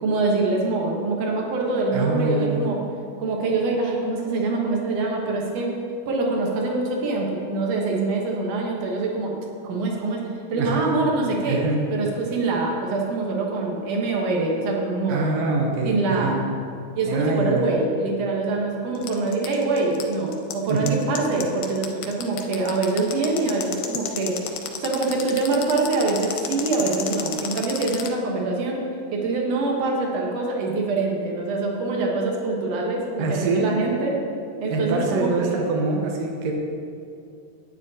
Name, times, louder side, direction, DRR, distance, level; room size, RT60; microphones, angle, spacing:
voice 1, 0.0-2.8 3.2-5.7 6.1-9.3 9.6-10.2 10.5-15.3 15.8-16.4 17.0-24.4 24.8-28.8 29.1-34.1 34.6-35.6, right 3 dB, 65° right, -1 dB, 1.7 m, -24 dB
voice 2, 1.9-2.7 10.6-10.9 11.5-11.8 15.1-16.4 17.1-17.7 20.7-21.0 33.2-33.7 34.7-36.5, right 3 dB, 90° right, 1 dB, 1.5 m, -25 dB
sound 1, 19.0-28.1, left 10 dB, 80° left, 2.0 m, -31 dB
11.0 x 9.1 x 2.7 m, 2.4 s
omnidirectional pair, 4.2 m